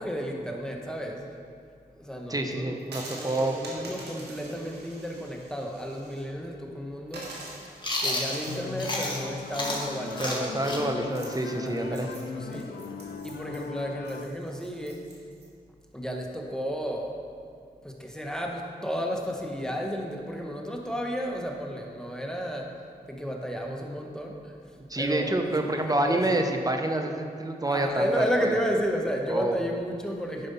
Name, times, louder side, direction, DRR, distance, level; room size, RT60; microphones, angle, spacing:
voice 1, 0.0-1.3 2.0-2.8 3.1-7.3 8.0-11.1 11.5-12.7 13.2-15.1 15.9-17.2 17.8-22.8 23.1-24.6 25.0-25.4 25.7-26.4 27.7-30.5, equal, 5° left, 1 dB, 1.4 m, -32 dB
voice 2, 2.3-3.5 10.2-12.1 24.9-28.5 29.3-29.5, right 1 dB, 20° right, 4 dB, 1.0 m, -28 dB
sound 1, 2.8-6.2 6.6-6.7 7.1-15.4, right 2 dB, 80° right, 1.8 m, -46 dB
Chewing mastication, 7.8-9.2 9.5-13.1, left 1 dB, 25° left, 1.9 m, -32 dB
sound 2, 8.4-14.2, left 5 dB, 80° left, 0.5 m, -39 dB
10.0 x 5.2 x 5.6 m, 2.3 s
cardioid pair, 50°, 17 cm